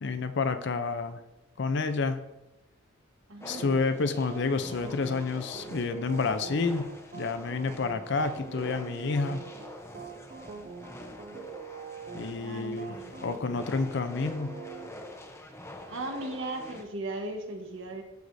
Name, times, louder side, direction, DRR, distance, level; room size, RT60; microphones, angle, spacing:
voice 1, 0.0-1.2 1.6-2.2 3.5-9.4 12.1-14.5, left 4 dB, 60° left, 10 dB, 0.5 m, -29 dB
voice 2, 3.3-3.6 12.4-13.4 15.9-18.0, right 2 dB, 80° right, 3 dB, 1.2 m, -37 dB
sound 1, 3.4-16.8, left 1 dB, 15° left, 0.7 m, -46 dB
sound 2, 3.6-14.9, right 6 dB, 40° right, 0.5 m, -44 dB
13.5 x 4.8 x 2.7 m, 1.0 s
head